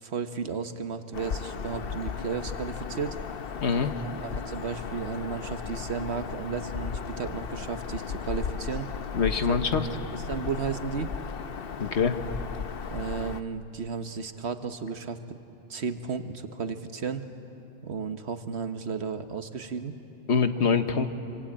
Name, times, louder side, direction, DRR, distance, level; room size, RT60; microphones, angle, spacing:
voice 1, 0.0-3.2 4.2-8.9 10.1-11.1 12.9-15.2 15.7-17.2 17.8-19.9, right 5 dB, 75° right, 8 dB, 1.5 m, -33 dB
Bird vocalization bird call bird song, 1.1-13.4, left 6 dB, 60° left, 1.0 m, -35 dB
voice 2, 9.1-9.9 11.8-12.2 20.3-21.1, left 5 dB, 85° left, 8 dB, 1.5 m, -24 dB
26.5 x 25.5 x 8.8 m, 2.9 s
omnidirectional pair, 1.1 m